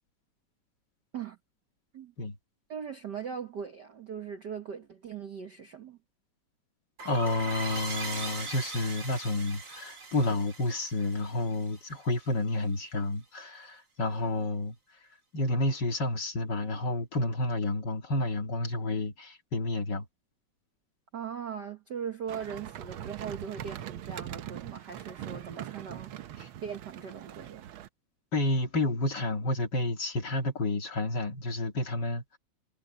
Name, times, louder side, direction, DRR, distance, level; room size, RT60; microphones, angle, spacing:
voice 1, 2.7-6.0 21.1-27.7, right 7 dB, 50° right, 1.4 m, -40 dB
voice 2, 7.0-14.8 15.3-20.1 26.4-26.5 28.3-32.4, left 2 dB, 40° left, 2.4 m, -30 dB
sound 1, 7.0-12.3, right 4 dB, 30° right, 2.2 m, -40 dB
sound 2, 22.3-27.9, right 11 dB, 80° right, 1.1 m, -42 dB
omnidirectional pair, 3.4 m